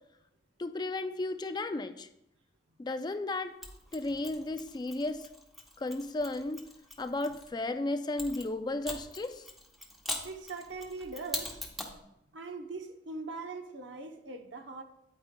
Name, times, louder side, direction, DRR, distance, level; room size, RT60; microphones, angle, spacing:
voice 1, 0.6-2.1 2.8-3.6 3.9-5.3 5.8-6.6 7.0-9.5, left 2 dB, 25° left, 9 dB, 0.3 m, -34 dB
Mechanisms, 3.6-7.5 8.2-12.0, left 1 dB, ahead, 0.9 m, -42 dB
voice 2, 10.2-11.6 12.3-14.8, right 3 dB, 75° right, 6 dB, 0.8 m, -41 dB
9.1 x 8.8 x 2.2 m, 0.84 s
head